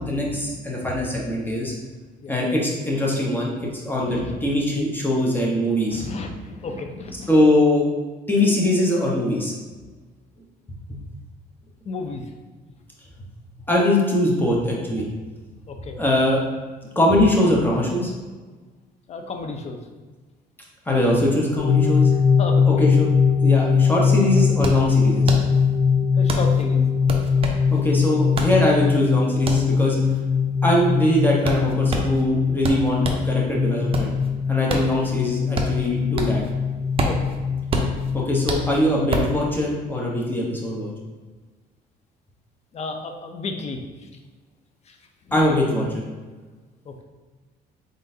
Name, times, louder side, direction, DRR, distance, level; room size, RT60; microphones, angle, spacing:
voice 1, 0.0-1.7 2.3-6.0 7.3-7.9 8.3-9.5 10.7-10.8 13.7-15.1 16.0-16.4 16.9-18.1 20.9-22.1 22.7-23.1 23.4-25.3 27.7-30.0 30.6-34.1 34.5-36.4 38.1-40.9 45.3-46.0, left 1 dB, 10° left, -3 dB, 1.0 m, -22 dB
voice 2, 4.0-4.4 5.9-7.3 11.8-12.2 15.7-16.0 19.1-19.8 22.4-22.6 26.1-26.8 34.7-34.8 37.1-37.2 42.7-43.8 44.9-45.0 46.9-47.0, left 3 dB, 40° left, 5 dB, 0.6 m, -32 dB
sound 1, 21.6-38.7, left 6 dB, 70° left, 0.7 m, -21 dB
sound 2, 23.7-23.8 24.0-33.3 33.7-36.5 36.8-39.4, right 2 dB, 35° right, 0.6 m, -28 dB
3.9 x 3.8 x 2.7 m, 1.4 s
cardioid pair, 110°, 17 cm